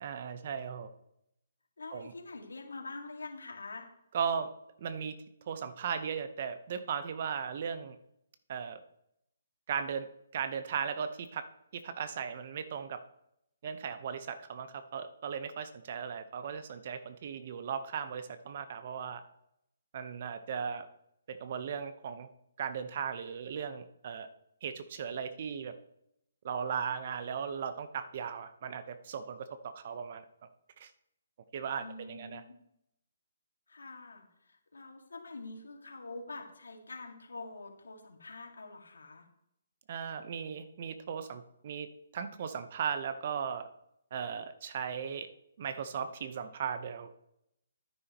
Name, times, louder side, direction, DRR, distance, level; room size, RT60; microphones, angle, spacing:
voice 1, 0.0-0.9 1.9-2.1 4.1-4.5 4.8-5.1 5.5-8.0 8.5-8.8 9.7-10.1 10.3-11.5 11.7-13.0 13.6-19.2 19.9-20.9 21.3-22.3 22.6-24.3 24.6-25.7 26.4-30.5 30.8-30.9 31.5-32.4 39.9-43.7 44.1-45.3 45.6-47.1, right 7 dB, 50° right, 10 dB, 0.9 m, -37 dB
voice 2, 1.8-3.9 31.8-32.6 33.7-39.3, left 3 dB, 90° left, 2 dB, 2.1 m, -45 dB
11.0 x 9.8 x 3.0 m, 0.77 s
hypercardioid pair, 150°, 0 cm